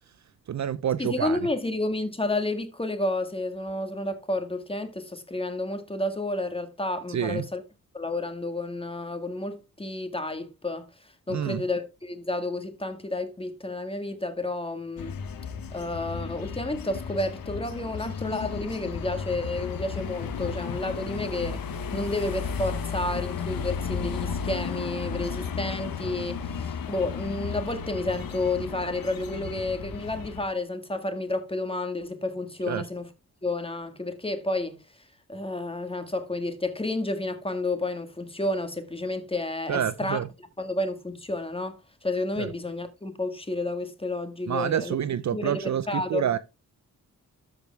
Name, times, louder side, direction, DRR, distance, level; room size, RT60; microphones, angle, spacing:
voice 1, 0.5-1.4 7.1-7.4 11.3-11.6 32.7-32.8 39.7-40.3 42.4-42.5 44.5-46.4, right 9 dB, 55° right, 0.6 m, -28 dB
voice 2, 1.0-7.6 7.9-15.2 15.7-33.1 33.4-34.8 35.3-40.2 40.6-45.0 45.3-45.5 45.9-46.2, left 2 dB, 15° left, 1.8 m, -31 dB
sound 1, 15.0-30.5, left 6 dB, 75° left, 1.3 m, -34 dB
13.0 x 4.9 x 3.4 m
cardioid pair, 65°, 35 cm